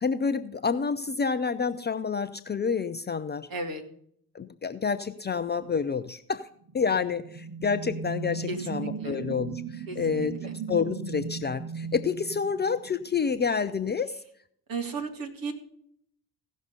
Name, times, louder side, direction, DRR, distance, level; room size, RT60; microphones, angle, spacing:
voice 1, 0.0-3.5 4.3-6.5 6.7-14.1, left 5 dB, 25° left, 11 dB, 0.6 m, -29 dB
voice 2, 3.5-3.8 8.5-9.2 9.9-10.5 14.7-15.5, right 3 dB, 50° right, 3 dB, 2.1 m, -35 dB
sound 1, 6.7-13.2, right 5 dB, 30° right, 1.0 m, -37 dB
16.0 x 6.2 x 5.4 m, 0.66 s
figure-of-eight pair, 40°, 44 cm